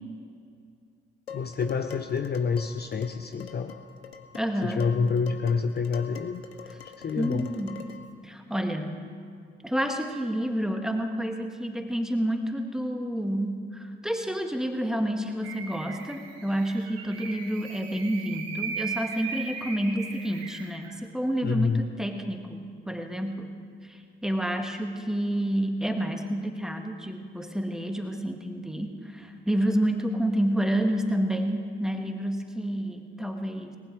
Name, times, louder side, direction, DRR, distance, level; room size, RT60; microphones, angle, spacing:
Dishes pots and pans, 1.3-8.1, left 6 dB, 90° left, 0.6 m, -44 dB
voice 1, 1.3-3.7 4.6-6.4 7.0-7.5 21.4-21.8, left 5 dB, 35° left, 7 dB, 0.7 m, -27 dB
voice 2, 4.3-4.9 7.2-7.8 8.2-9.0 9.6-23.6 23.9-33.8, right 1 dB, ahead, 4 dB, 1.7 m, -29 dB
sound 1, 15.4-20.9, right 5 dB, 75° right, 1.5 m, -38 dB
19.0 x 11.5 x 4.7 m, 2.3 s
figure-of-eight pair, 40°, 30 cm